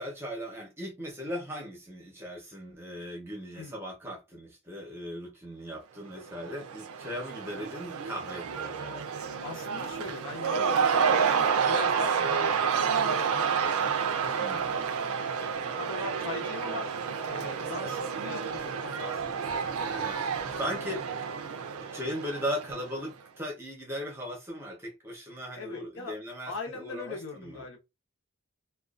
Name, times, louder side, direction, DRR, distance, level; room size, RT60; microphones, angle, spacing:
voice 1, 0.0-9.3 14.2-14.8 19.9-20.2 20.6-21.0 21.9-27.6, equal, 10° right, 0.7 m, -38 dB
Cheering / Crowd, 6.2-23.1, right 6 dB, 85° right, 0.4 m, -30 dB
voice 2, 9.4-14.9 15.2-15.4 15.8-16.9 17.3-19.8 20.7-21.1 25.6-26.2 26.5-27.8, left 3 dB, 65° left, 0.8 m, -41 dB
2.4 x 2.2 x 2.4 m
head